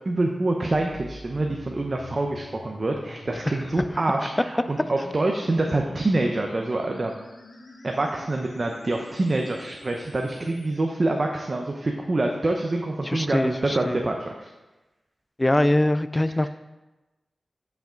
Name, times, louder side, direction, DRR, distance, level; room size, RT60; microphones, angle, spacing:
voice 1, 0.0-7.1 7.8-14.5, right 2 dB, 50° right, 2 dB, 0.8 m, -26 dB
sound 1, 0.7-10.7, left 2 dB, 60° left, 1.4 m, -46 dB
voice 2, 13.0-14.0 15.4-16.5, left 1 dB, 20° left, 12 dB, 0.4 m, -23 dB
9.9 x 5.8 x 3.9 m, 1.1 s
cardioid pair, 50°, 0 cm